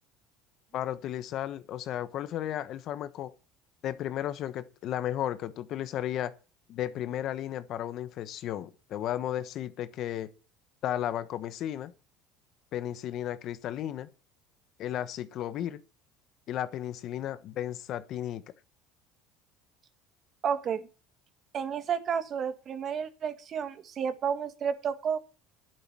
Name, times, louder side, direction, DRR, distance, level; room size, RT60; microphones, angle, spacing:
voice 1, 0.7-3.3 3.8-6.3 6.7-10.3 10.8-11.9 12.7-14.1 14.8-15.8 16.5-18.4, left 11 dB, 55° left, 1.1 m, -34 dB
voice 2, 20.4-20.9 21.5-25.2, right 7 dB, 45° right, 1.8 m, -31 dB
11.0 x 9.2 x 6.2 m
supercardioid pair, 95°, 0 cm